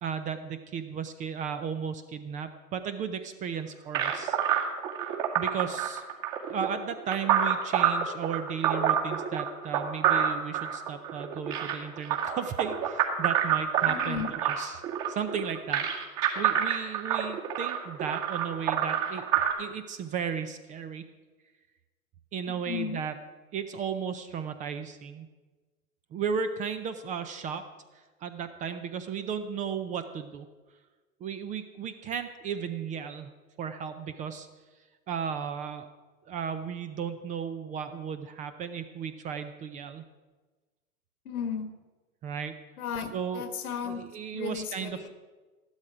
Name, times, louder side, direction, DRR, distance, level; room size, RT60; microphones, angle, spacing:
voice 1, 0.0-4.4 5.4-6.0 6.5-14.8 15.1-15.9 16.4-19.3 19.6-21.0 22.3-23.1 23.5-25.3 26.1-27.6 27.9-30.5 31.2-33.3 33.6-34.5 35.1-35.9 36.3-40.0 42.2-42.6 43.1-43.4 43.8-45.1, right 7 dB, 20° right, 10 dB, 0.4 m, -35 dB
sound 1, 3.9-19.5, right 9 dB, 45° right, 2.4 m, -27 dB
voice 2, 13.9-14.3 22.5-23.0 41.2-41.7 42.8-44.0 44.3-45.1, left 7 dB, 80° left, 9 dB, 1.6 m, -35 dB
13.0 x 12.0 x 4.9 m, 1.3 s
hypercardioid pair, 120°, 43 cm